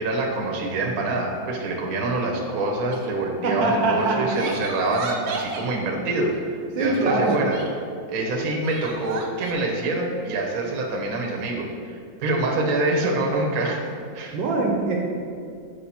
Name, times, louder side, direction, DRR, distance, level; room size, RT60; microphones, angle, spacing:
voice 1, 0.0-7.6 8.1-13.8 14.1-14.4, right 2 dB, 50° right, 0 dB, 1.2 m, -25 dB
Crying sobbing, 2.8-3.1 4.0-5.7 6.8-7.7 8.6-9.5, right 4 dB, 90° right, 1.6 m, -35 dB
voice 2, 3.4-4.4 6.7-7.4 14.3-15.0, right 2 dB, 70° right, -1 dB, 1.4 m, -23 dB
6.6 x 5.0 x 4.3 m, 2.2 s
omnidirectional pair, 2.3 m